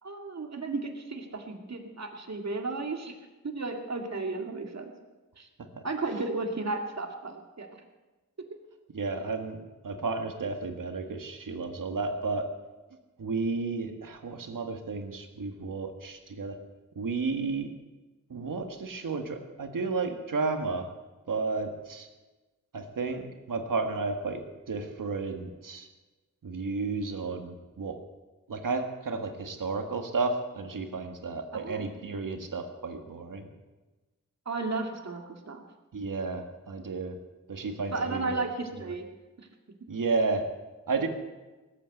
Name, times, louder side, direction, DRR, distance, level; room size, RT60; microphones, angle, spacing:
voice 1, 0.0-3.1 3.4-4.9 5.4-5.5 5.8-7.8 8.5-8.6 31.5-31.9 34.5-35.6 37.9-39.1, right 3 dB, 55° right, 3 dB, 2.3 m, -34 dB
voice 2, 8.9-9.6 9.8-12.5 13.2-16.6 17.0-17.7 18.3-20.9 21.3-22.1 22.7-25.9 26.4-28.0 28.5-33.5 35.9-37.2 37.5-38.4 39.9-40.5 40.9-41.1, right 4 dB, 75° right, 5 dB, 1.8 m, -32 dB
18.5 x 8.8 x 7.9 m, 1.2 s
wide cardioid pair, 80°, 33 cm